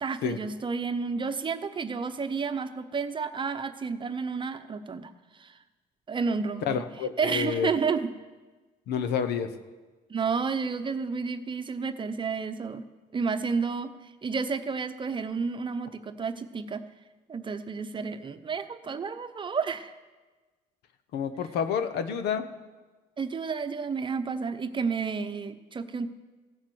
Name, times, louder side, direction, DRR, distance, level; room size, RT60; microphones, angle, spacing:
voice 1, 0.0-5.6 6.1-6.8 7.2-8.1 10.1-12.8 13.1-16.8 17.3-19.9 23.2-26.1, right 5 dB, 30° right, 9 dB, 0.8 m, -31 dB
voice 2, 6.6-7.7 8.9-9.5 21.1-22.5, left 7 dB, 75° left, 10 dB, 1.1 m, -29 dB
16.0 x 7.3 x 7.9 m, 1.3 s
cardioid pair, 110°, 17 cm